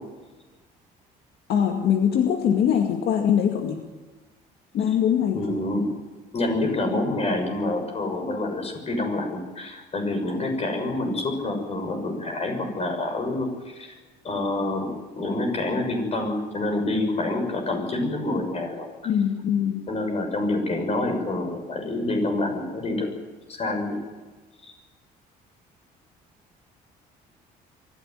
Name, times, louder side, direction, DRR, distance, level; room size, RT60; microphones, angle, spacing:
voice 1, 1.5-3.8 4.7-5.4 19.1-19.8, left 8 dB, 70° left, 3 dB, 2.1 m, -22 dB
voice 2, 5.3-5.9 6.3-13.9 14.2-14.9 15.2-19.1 19.9-23.1 23.5-24.0 24.6-24.7, left 2 dB, 40° left, 5 dB, 6.8 m, -27 dB
24.0 x 15.5 x 9.4 m, 1.3 s
cardioid pair, 110°, 17 cm